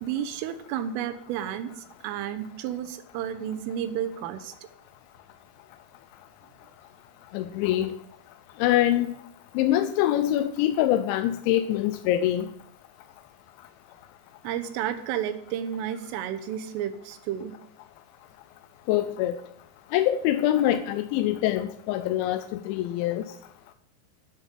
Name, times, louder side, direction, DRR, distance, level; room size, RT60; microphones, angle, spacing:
voice 1, 0.0-4.5 14.4-17.6, right 10 dB, 90° right, 3.6 m, -32 dB
voice 2, 7.3-8.0 8.6-9.2 9.6-12.5 18.9-19.4 19.9-23.3, left 12 dB, 80° left, 2.8 m, -24 dB
10.0 x 6.5 x 8.3 m
omnidirectional pair, 5.6 m